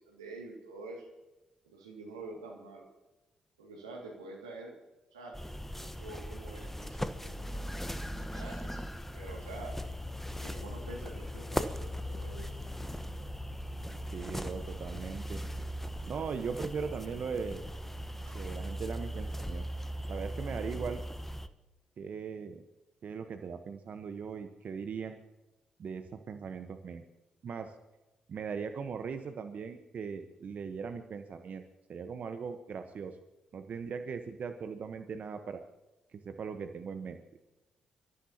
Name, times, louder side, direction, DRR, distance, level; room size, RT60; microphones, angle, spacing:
voice 1, 0.1-1.1 1.7-2.9 3.6-4.7 5.1-5.4 5.7-7.7 8.2-8.8 9.1-9.8 10.3-12.7 18.3-18.4, right 2 dB, 90° right, 0 dB, 2.3 m, -47 dB
sound 1, 5.3-21.5, equal, 10° left, 1.1 m, -39 dB
voice 2, 14.1-15.4 16.1-17.7 18.3-19.7 20.1-21.0 22.0-22.6 23.0-25.2 25.8-27.0 27.4-27.7 28.3-31.6 31.9-33.2 33.5-35.6 36.1-37.2, right 6 dB, 55° right, 7 dB, 1.1 m, -39 dB
27.5 x 14.0 x 2.9 m, 1.0 s
hypercardioid pair, 40°, 3 cm